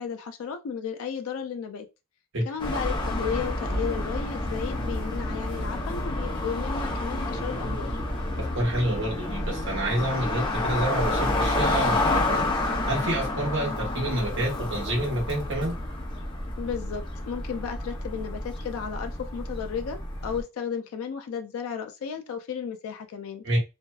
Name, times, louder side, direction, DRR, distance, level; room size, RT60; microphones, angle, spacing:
voice 1, 0.0-1.9 2.5-7.9 16.6-23.4, left 7 dB, 85° left, 0.4 m, -34 dB
sound 1, 2.6-20.4, left 1 dB, 25° left, 0.6 m, -29 dB
voice 2, 8.4-12.5 12.9-15.7 23.4-23.6, right 1 dB, 60° right, 1.1 m, -28 dB
2.6 x 2.2 x 2.2 m
head